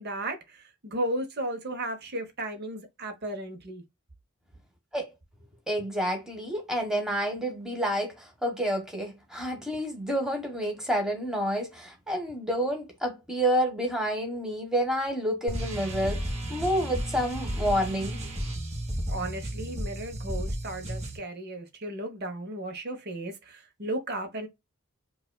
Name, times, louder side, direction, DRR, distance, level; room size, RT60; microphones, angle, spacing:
voice 1, 0.0-3.8 19.1-24.5, right 1 dB, 45° right, 1.0 m, -35 dB
voice 2, 5.7-18.2, equal, 5° right, 1.2 m, -29 dB
sound 1, 15.5-21.2, right 1 dB, 30° right, 1.4 m, -33 dB
4.7 x 2.5 x 2.2 m
head